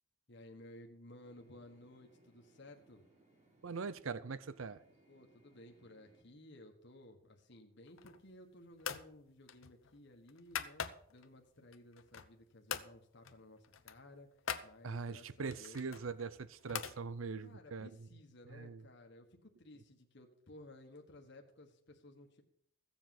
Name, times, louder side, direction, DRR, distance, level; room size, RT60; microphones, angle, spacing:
voice 1, 0.3-3.0 5.1-10.8 11.1-14.3 14.6-15.8 17.4-22.4, left 1 dB, 60° left, 1.5 m, -57 dB
sound 1, 1.2-6.2, right 2 dB, 35° right, 4.0 m, -68 dB
voice 2, 3.6-4.8 14.8-17.9 18.5-18.8, right 4 dB, 80° right, 0.6 m, -42 dB
sound 2, 7.9-8.3 8.8-9.1 9.5-11.3 11.7-12.4 12.7-12.9 13.2-13.4 13.6-14.7 15.5-17.0, left 8 dB, 75° left, 0.9 m, -43 dB
15.5 x 7.4 x 5.9 m
head